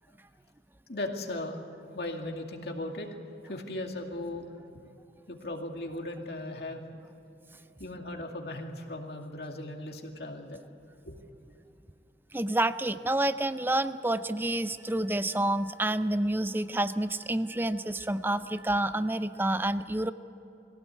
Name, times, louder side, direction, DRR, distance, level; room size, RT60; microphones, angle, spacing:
voice 1, 0.9-1.6 1.9-3.2 3.4-4.5 5.3-7.0 7.8-10.6 11.1-11.2, left 1 dB, 65° left, 2 dB, 2.3 m, -37 dB
voice 2, 12.3-20.1, right 1 dB, 10° right, 12 dB, 0.5 m, -28 dB
22.5 x 16.5 x 8.3 m, 3.0 s
head